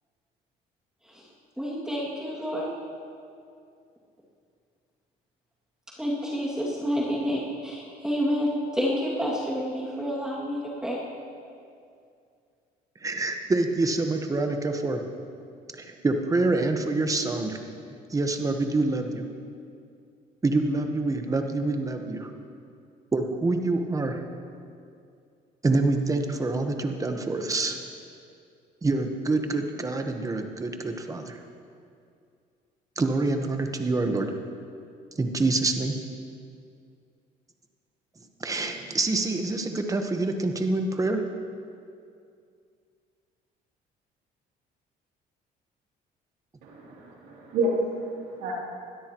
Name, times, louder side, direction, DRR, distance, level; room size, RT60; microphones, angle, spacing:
voice 1, 1.6-2.7 6.0-11.0, equal, 5° right, -7 dB, 2.3 m, -29 dB
voice 2, 13.0-15.0 15.7-17.6 18.1-19.2 20.4-22.3 23.1-24.2 25.6-27.8 28.8-31.4 33.0-34.3 35.2-36.0 38.4-41.2, right 2 dB, 20° right, 5 dB, 1.2 m, -26 dB
voice 3, 46.6-48.5, right 1 dB, 90° right, -4 dB, 3.1 m, -29 dB
21.0 x 13.0 x 3.1 m, 2.4 s
cardioid pair, 110°, 17 cm